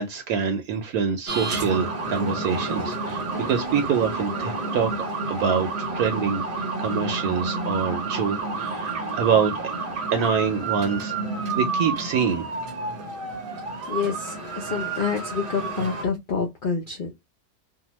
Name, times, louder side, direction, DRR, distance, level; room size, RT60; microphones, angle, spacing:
voice 1, 0.0-9.6 10.1-11.1 11.5-12.5, right 6 dB, 70° right, 1.0 m, -25 dB
sound 1, 1.3-16.0, right 3 dB, 50° right, 0.7 m, -30 dB
voice 2, 13.9-17.2, left 5 dB, 75° left, 0.4 m, -28 dB
2.7 x 2.1 x 3.0 m
omnidirectional pair, 1.7 m